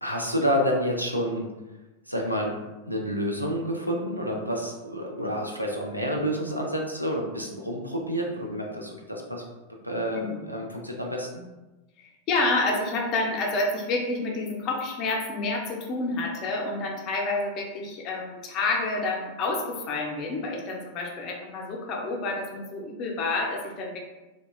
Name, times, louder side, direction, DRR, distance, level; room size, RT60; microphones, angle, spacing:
voice 1, 0.0-1.5 2.1-2.5 2.8-9.4 9.8-11.4, equal, 90° right, 0 dB, 0.4 m, -29 dB
voice 2, 10.1-10.4 12.0-24.0, left 2 dB, 40° left, 0 dB, 0.4 m, -29 dB
2.9 x 2.1 x 2.2 m, 1.1 s
figure-of-eight pair, 90°, 0 cm